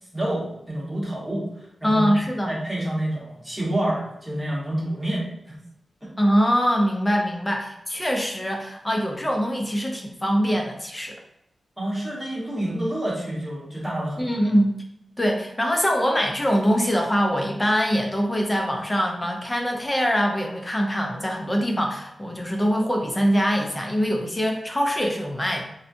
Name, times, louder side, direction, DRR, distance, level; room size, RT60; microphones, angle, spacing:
voice 1, 0.1-5.6 11.8-14.5, right 1 dB, 10° right, -6 dB, 1.1 m, -28 dB
voice 2, 1.8-2.5 6.2-11.2 14.2-14.7 15.2-25.6, equal, 15° left, 1 dB, 0.5 m, -23 dB
4.0 x 2.2 x 2.6 m, 0.81 s
wide cardioid pair, 115°, 0 cm